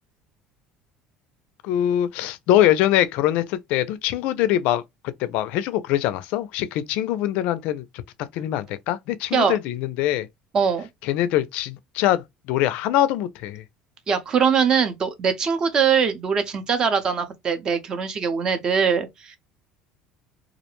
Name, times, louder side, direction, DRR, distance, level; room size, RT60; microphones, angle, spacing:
voice 1, 1.6-4.8 5.2-10.3 11.0-13.6, left 12 dB, 70° left, 0.3 m, -23 dB
voice 2, 10.5-10.9 14.1-19.4, right 6 dB, 35° right, 0.6 m, -22 dB
2.4 x 2.1 x 2.9 m
cardioid pair, 135°, 2 cm